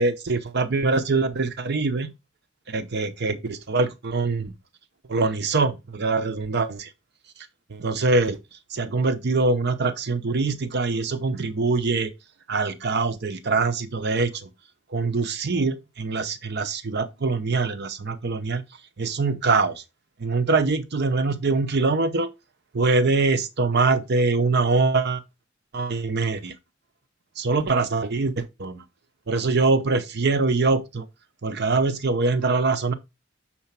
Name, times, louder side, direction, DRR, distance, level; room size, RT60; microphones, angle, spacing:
voice 1, 0.0-2.1 2.7-4.5 5.1-6.9 7.7-8.4 8.7-12.1 12.5-14.5 14.9-18.6 19.0-19.8 20.2-22.3 22.7-25.2 25.7-26.5 27.4-28.8 29.3-31.1 31.4-32.9, right 3 dB, 60° right, 0.7 m, -23 dB
6.6 x 4.3 x 5.8 m
head